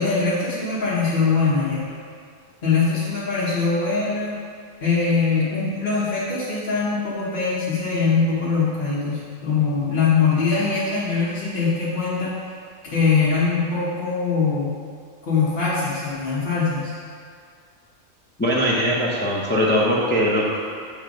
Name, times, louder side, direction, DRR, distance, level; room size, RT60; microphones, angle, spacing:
voice 1, 0.0-1.9 2.6-4.4 4.8-12.3 12.8-14.7 15.2-17.0, left 4 dB, 45° left, -8 dB, 1.1 m, -22 dB
voice 2, 18.4-20.6, equal, 15° left, -5 dB, 0.5 m, -21 dB
7.3 x 3.3 x 5.0 m, 2.2 s
omnidirectional pair, 1.4 m